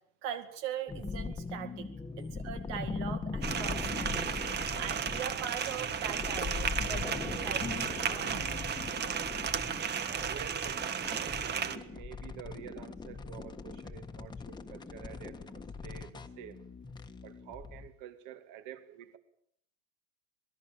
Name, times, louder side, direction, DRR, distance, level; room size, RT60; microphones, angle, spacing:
voice 1, 0.2-1.9 2.2-4.3 4.8-8.6 8.9-9.2, right 9 dB, 65° right, 8 dB, 2.2 m, -41 dB
sound 1, 0.9-17.9, left 4 dB, 10° left, 1.5 m, -40 dB
sound 2, 3.4-11.8, right 7 dB, 25° right, 1.5 m, -34 dB
voice 2, 10.1-16.6 17.2-19.2, right 10 dB, 50° right, 10 dB, 2.4 m, -49 dB
26.5 x 19.5 x 7.2 m, 0.70 s
supercardioid pair, 135°, 38 cm